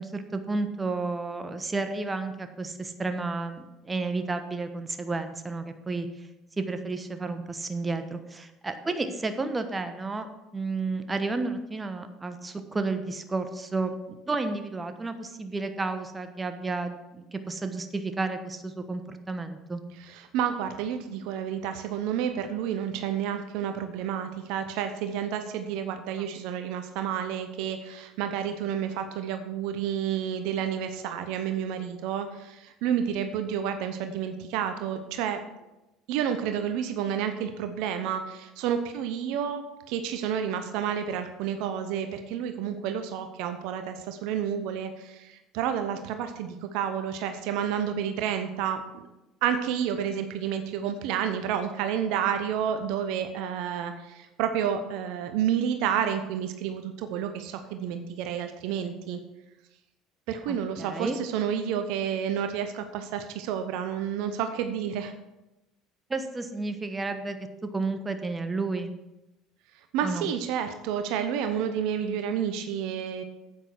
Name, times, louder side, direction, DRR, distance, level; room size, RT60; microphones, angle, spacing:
voice 1, 0.0-6.3 6.6-10.3 10.5-19.8 26.2-26.3 50.1-50.3 60.5-61.2 66.1-67.4 67.6-68.9 70.0-70.3, right 3 dB, 20° right, 8 dB, 1.1 m, -32 dB
voice 2, 20.0-35.4 36.1-48.8 49.4-59.2 60.3-65.1 69.9-73.2, right 8 dB, 65° right, 8 dB, 0.8 m, -30 dB
9.7 x 8.5 x 4.7 m, 0.98 s
hypercardioid pair, 65°, 0 cm